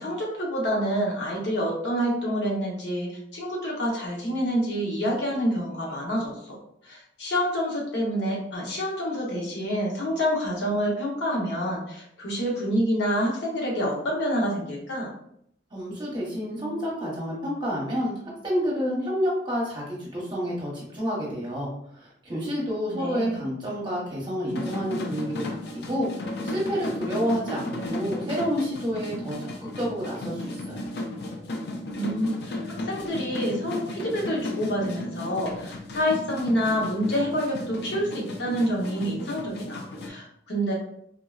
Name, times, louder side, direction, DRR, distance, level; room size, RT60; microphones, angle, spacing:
voice 1, 0.0-6.3 6.8-15.1 22.9-23.4 31.9-32.6 32.9-40.7, equal, 90° left, -3 dB, 0.9 m, -27 dB
voice 2, 15.7-18.2 18.4-30.9, equal, 25° right, -5 dB, 0.9 m, -29 dB
sound 1, 24.5-40.1, left 1 dB, 65° left, 0.4 m, -34 dB
3.5 x 2.0 x 2.4 m, 0.71 s
head